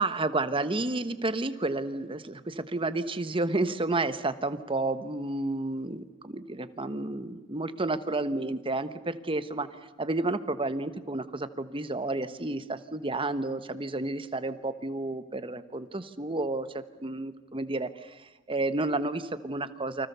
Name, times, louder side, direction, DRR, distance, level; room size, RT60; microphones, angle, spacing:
voice 1, 0.0-9.7 10.0-20.1, right 2 dB, 25° right, 11 dB, 1.2 m, -31 dB
29.0 x 25.0 x 6.9 m, 1.2 s
head